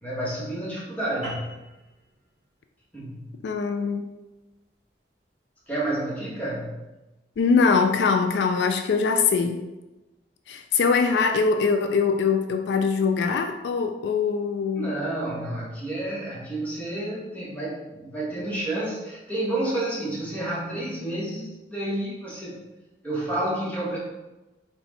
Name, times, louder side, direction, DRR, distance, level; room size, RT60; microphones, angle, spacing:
voice 1, 0.0-1.6 2.9-3.3 5.7-6.9 14.7-22.6 23.0-24.0, right 1 dB, 10° left, -6 dB, 1.1 m, -30 dB
sound 1, 1.2-6.0, right 2 dB, 40° right, 1.3 m, -44 dB
voice 2, 3.4-4.0 7.4-9.7 10.5-14.9, left 5 dB, 80° left, 5 dB, 0.3 m, -22 dB
4.1 x 2.3 x 4.0 m, 1.0 s
head